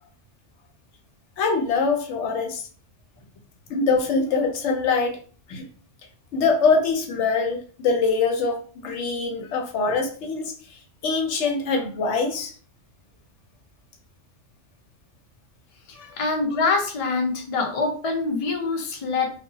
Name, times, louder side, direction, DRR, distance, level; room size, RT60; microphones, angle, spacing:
voice 1, 1.4-2.6 3.7-5.2 5.5-5.6 6.3-10.5 11.0-12.5 16.0-16.2, left 4 dB, 70° left, 4 dB, 0.9 m, -23 dB
voice 2, 16.2-19.3, left 3 dB, 45° left, 2 dB, 0.4 m, -24 dB
2.7 x 2.3 x 2.7 m, 0.42 s
omnidirectional pair, 1.3 m